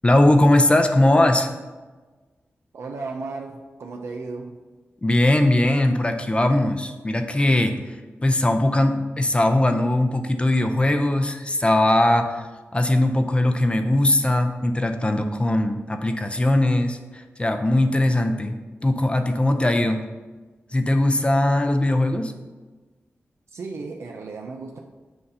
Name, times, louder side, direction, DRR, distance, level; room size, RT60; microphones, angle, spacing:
voice 1, 0.0-1.5 5.0-8.0 8.2-12.5 12.7-18.6 18.8-20.0 20.7-22.3, left 1 dB, 25° left, 6 dB, 0.5 m, -20 dB
voice 2, 2.7-4.6 23.5-24.8, right 3 dB, 80° right, 2 dB, 0.5 m, -34 dB
7.8 x 2.8 x 5.4 m, 1.3 s
wide cardioid pair, 80°, 5 cm